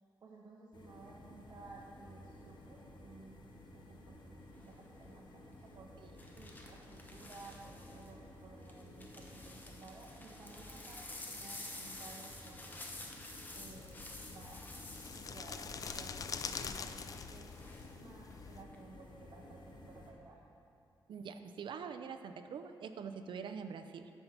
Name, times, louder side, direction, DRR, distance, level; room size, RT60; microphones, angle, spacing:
voice 1, 0.2-3.4 3.7-5.9 6.3-12.9 13.5-14.7 15.1-20.3, right 3 dB, 50° right, -3 dB, 1.1 m, -56 dB
sound 1, 0.7-20.1, left 1 dB, 65° left, 1.3 m, -55 dB
sound 2, 4.5-4.9 6.2-8.1 8.7-17.9 18.3-18.8, left 2 dB, 20° left, 1.0 m, -51 dB
Bat wings, 13.6-18.6, left 5 dB, 45° left, 0.4 m, -45 dB
voice 2, 21.1-24.1, right 6 dB, 70° right, 8 dB, 0.6 m, -44 dB
12.5 x 5.6 x 5.8 m, 2.7 s
wide cardioid pair, 120°, 8 cm